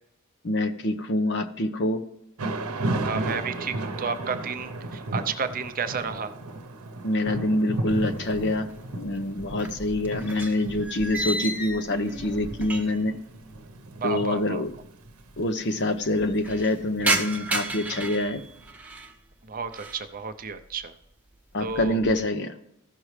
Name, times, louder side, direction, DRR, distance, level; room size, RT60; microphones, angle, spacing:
voice 1, 0.4-2.0 7.0-8.7 8.9-13.1 14.0-14.7 15.4-18.4 21.5-22.5, left 1 dB, 55° left, 8 dB, 0.9 m, -26 dB
Thunder / Rain, 2.4-18.4, right 2 dB, 80° right, 0.9 m, -35 dB
voice 2, 3.1-6.3 14.0-14.6 19.4-20.9 21.6-22.0, right 5 dB, 40° right, 8 dB, 0.6 m, -32 dB
sound 1, 7.9-8.8 9.0-13.1 13.4-13.5 14.4-14.5 14.7-14.8 15.0-15.5 15.9-19.1 19.6-20.1 20.5-20.9 21.3-22.2, right 2 dB, 5° right, 0.9 m, -33 dB
15.0 x 6.1 x 3.3 m, 0.80 s
head